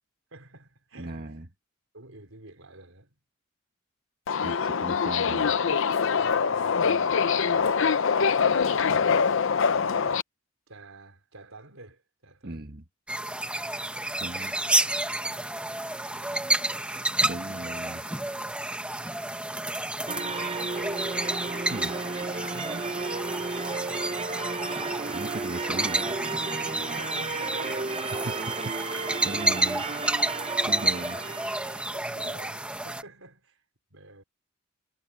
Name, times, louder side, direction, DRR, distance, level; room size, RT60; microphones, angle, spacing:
voice 1, 0.3-1.3 1.9-3.1 6.2-7.9 8.5-9.2 10.7-12.7 26.9-28.4 29.0-29.8 31.9-34.2, right 2 dB, 80° right, 4.6 m, -49 dB
voice 2, 1.0-1.5 4.4-5.6 12.4-12.8 14.2-14.5 17.3-18.0 21.7-21.9 22.5-22.9 25.1-26.1 28.1-28.4 28.6-29.8 30.7-31.2, right 2 dB, 50° right, 1.5 m, -38 dB
Subway metro underground, 4.3-10.2, left 6 dB, 65° left, 0.6 m, -24 dB
sound 1, 13.1-33.0, right 1 dB, 5° right, 1.2 m, -30 dB
sound 2, 20.1-31.9, right 3 dB, 30° right, 0.9 m, -33 dB
head